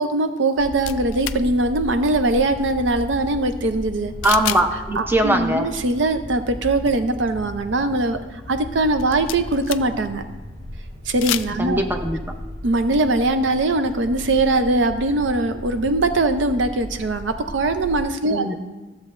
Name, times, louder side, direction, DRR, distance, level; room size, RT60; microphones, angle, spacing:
voice 1, 0.0-4.1 5.0-10.2 11.1-11.8 12.6-18.5, right 2 dB, 70° right, 8 dB, 0.6 m, -21 dB
sound 1, 0.6-18.0, equal, 45° right, 2.1 m, -36 dB
sound 2, 0.8-1.4 4.2-4.7 5.0-5.1 8.9-10.1 11.1-11.5, left 13 dB, 90° left, 0.3 m, -28 dB
voice 2, 4.2-5.7 11.6-12.2 18.3-18.5, right 1 dB, 10° right, 4 dB, 0.6 m, -21 dB
14.0 x 7.4 x 2.5 m, 1.2 s
head